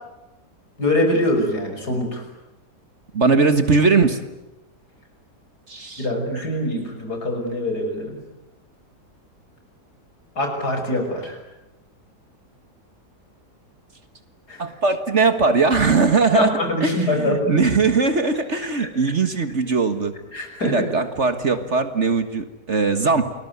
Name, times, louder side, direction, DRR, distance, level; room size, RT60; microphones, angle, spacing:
voice 1, 0.8-2.2 6.0-8.1 10.4-11.4 14.5-14.6 16.3-17.5 20.3-20.9, left 1 dB, 70° left, 4 dB, 6.4 m, -23 dB
voice 2, 3.1-4.2 5.7-6.1 14.6-16.5 16.8-20.1 20.6-23.3, right 4 dB, 45° right, 9 dB, 1.8 m, -20 dB
29.5 x 21.0 x 9.5 m, 0.98 s
omnidirectional pair, 1.8 m